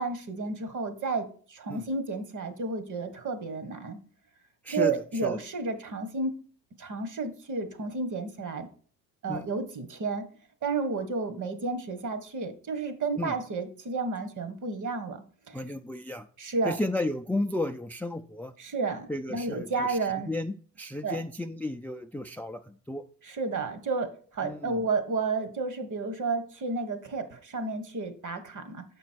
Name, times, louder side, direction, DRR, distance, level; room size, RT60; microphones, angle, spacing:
voice 1, 0.0-4.0 4.7-6.3 6.8-8.7 9.2-10.2 10.6-15.6 16.4-16.8 18.6-20.3 21.0-21.2 23.2-28.8, right 4 dB, 50° right, 11 dB, 1.5 m, -31 dB
voice 2, 15.5-16.3 16.6-18.5 19.1-20.0 20.3-23.0 24.4-24.8, left 2 dB, 5° left, 9 dB, 0.4 m, -33 dB
7.0 x 5.3 x 4.5 m, 0.44 s
supercardioid pair, 80°, 39 cm